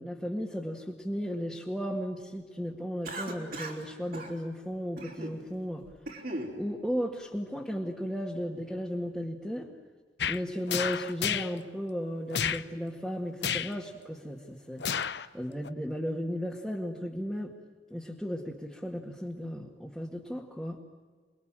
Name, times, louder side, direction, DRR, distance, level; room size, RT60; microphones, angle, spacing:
voice 1, 0.0-5.8 6.6-9.7 10.3-14.9 15.3-17.5 17.9-20.8, equal, ahead, -2 dB, 1.9 m, -35 dB
Cough, 3.0-3.8 4.1-4.3 5.0-5.4 5.8-6.5, right 1 dB, 55° right, 4.3 m, -38 dB
Punch slap n' kick, 10.2-10.4 10.7-11.5 12.3-12.6 13.4-13.7 14.8-15.3 15.6-15.7, left 8 dB, 65° left, 0.8 m, -30 dB
29.0 x 21.0 x 9.1 m, 1.5 s
head